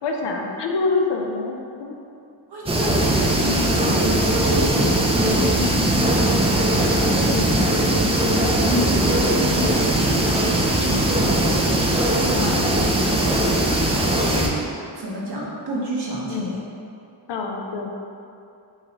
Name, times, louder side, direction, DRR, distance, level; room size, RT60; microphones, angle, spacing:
voice 1, 0.0-2.0 3.8-4.0 4.7-4.8 7.3-7.6 12.3-12.6 16.3-16.6 17.3-17.9, left 4 dB, 60° left, 1 dB, 0.6 m, -26 dB
voice 2, 2.5-7.6 8.3-12.6 13.0-14.6 14.9-16.6, right 1 dB, 55° right, -5 dB, 1.0 m, -30 dB
sound 1, 2.7-14.5, right 1 dB, 15° right, 0.4 m, -20 dB
4.7 x 3.1 x 2.9 m, 2.6 s
cardioid pair, 90°, 47 cm